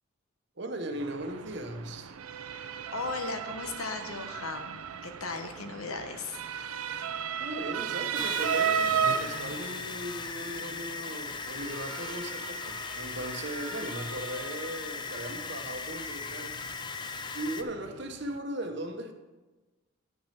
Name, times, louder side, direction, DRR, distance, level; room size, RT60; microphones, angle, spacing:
voice 1, 0.6-2.1 7.4-16.6 17.3-19.1, right 1 dB, 55° right, 6 dB, 0.9 m, -38 dB
Motor vehicle (road) / Siren, 1.0-18.4, right 7 dB, 85° right, 0.5 m, -36 dB
voice 2, 2.5-6.4, left 3 dB, 85° left, 6 dB, 1.1 m, -37 dB
sound 1, 8.1-17.6, left 5 dB, 20° left, 0.3 m, -38 dB
9.6 x 6.0 x 5.8 m, 1.2 s
head